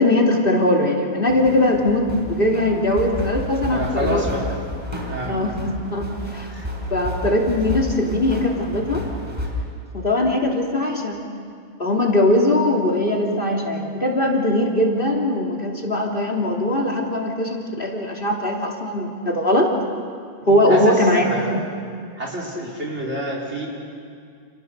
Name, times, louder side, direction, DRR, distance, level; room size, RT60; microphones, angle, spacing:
voice 1, 0.0-4.2 4.9-5.0 5.3-6.5 6.9-9.1 9.9-11.2 11.8-19.7 20.5-21.6, left 1 dB, 50° left, -1 dB, 3.2 m, -20 dB
sound 1, 1.3-9.5, left 1 dB, 25° right, 4.8 m, -31 dB
voice 2, 3.7-4.4 5.0-5.4 6.5-6.7 20.7-21.6 22.2-23.7, right 1 dB, 85° right, -1 dB, 5.0 m, -28 dB
29.5 x 28.5 x 6.7 m, 2.3 s
omnidirectional pair, 1.1 m